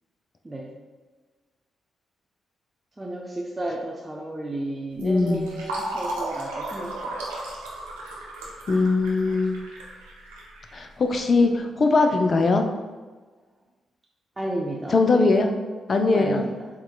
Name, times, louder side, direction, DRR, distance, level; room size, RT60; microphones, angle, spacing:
voice 1, 3.0-7.2 12.1-12.2 14.4-15.2 15.7-16.7, right 1 dB, 25° right, -2 dB, 0.7 m, -33 dB
Fill (with liquid), 4.9-11.3, right 2 dB, 90° right, 0.7 m, -35 dB
voice 2, 5.0-5.5 8.7-9.6 10.7-12.7 14.9-15.5 15.9-16.4, left 3 dB, 50° left, 5 dB, 0.6 m, -20 dB
7.7 x 3.0 x 2.3 m, 1.4 s
hypercardioid pair, 40°, 0 cm